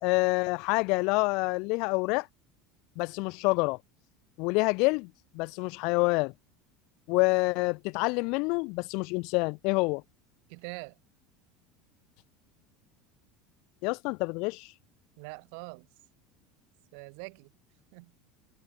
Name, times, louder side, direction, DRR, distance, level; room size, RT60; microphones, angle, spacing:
voice 1, 0.0-2.3 3.0-3.8 4.4-5.1 5.3-6.3 7.1-10.0 13.8-14.7, left 29 dB, 55° left, 0.7 m, -27 dB
voice 2, 10.5-11.0 15.2-15.9 16.9-17.5 17.9-18.1, right 38 dB, 60° right, 4.2 m, -43 dB
cardioid pair, 165°, 0 cm